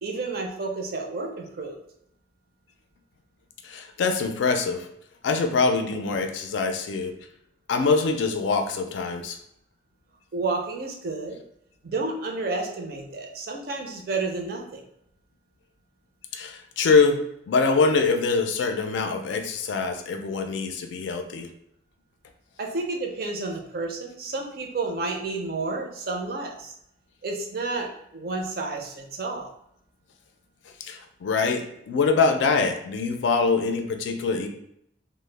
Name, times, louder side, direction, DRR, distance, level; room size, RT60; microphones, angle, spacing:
voice 1, 0.0-1.8 10.3-11.4 11.8-14.8 22.6-26.7 27.2-29.5, right 3 dB, 55° right, 1 dB, 0.5 m, -31 dB
voice 2, 3.6-4.9 5.2-7.1 7.7-9.4 16.3-17.2 17.5-21.5 30.9-34.5, left 4 dB, 80° left, 5 dB, 0.3 m, -24 dB
2.0 x 2.0 x 3.2 m, 0.74 s
head